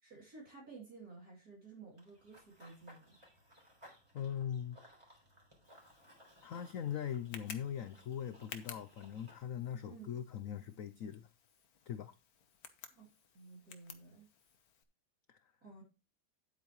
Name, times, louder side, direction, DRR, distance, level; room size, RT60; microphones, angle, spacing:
voice 1, 0.0-3.2 9.8-10.2 12.9-13.1 13.3-14.3 15.6-15.8, right 4 dB, 50° right, 3.6 m, -54 dB
Run / Bird vocalization bird call bird song, 2.0-9.4, equal, 15° right, 3.9 m, -62 dB
voice 2, 4.1-4.8 6.4-11.3 11.9-12.1 15.3-15.4, left 9 dB, 80° left, 0.7 m, -41 dB
Tick, 5.6-14.8, left 7 dB, 55° left, 1.4 m, -55 dB
10.0 x 8.4 x 3.1 m
omnidirectional pair, 2.1 m